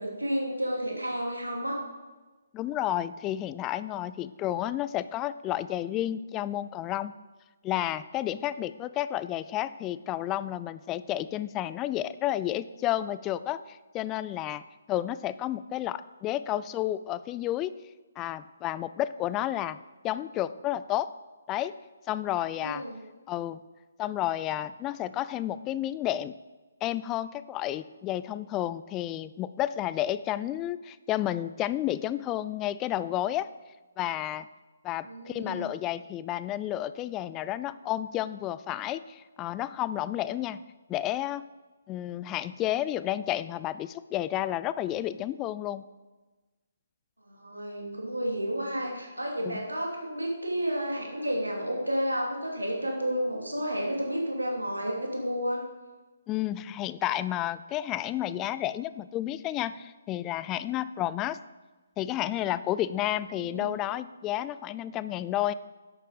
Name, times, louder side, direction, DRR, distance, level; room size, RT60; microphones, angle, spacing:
voice 1, 0.0-1.8 22.6-23.0 35.0-35.7 47.2-55.6 63.3-63.7, equal, 90° right, -1 dB, 2.9 m, -31 dB
voice 2, 2.5-7.1 7.6-14.6 14.9-17.7 18.2-19.8 20.0-21.1 21.5-21.8 22.1-22.8 23.3-23.6 24.0-26.3 26.8-33.5 34.0-34.5 34.8-40.6 40.9-41.4 41.9-45.8 49.4-49.6 56.3-61.4 62.0-65.5, left 13 dB, 20° left, 15 dB, 0.4 m, -31 dB
11.0 x 8.5 x 5.1 m, 1.2 s
figure-of-eight pair, 140°, 0 cm